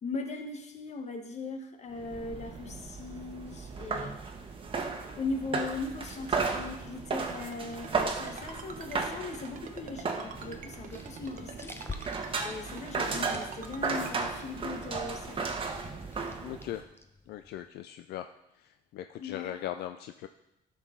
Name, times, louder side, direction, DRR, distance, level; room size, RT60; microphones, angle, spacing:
voice 1, 0.0-4.2 5.2-15.6 19.2-19.5, left 3 dB, 40° left, 6 dB, 1.2 m, -39 dB
sound 1, 1.9-16.8, right 4 dB, 30° right, 1.1 m, -35 dB
Ringtone, 7.3-14.1, right 7 dB, 50° right, 0.9 m, -45 dB
sound 2, 10.4-17.7, left 3 dB, 15° left, 0.7 m, -49 dB
voice 2, 16.4-16.8 17.3-18.3 18.9-20.3, left 12 dB, 70° left, 9 dB, 0.4 m, -39 dB
12.0 x 6.0 x 3.8 m, 0.87 s
cardioid pair, 110°, 17 cm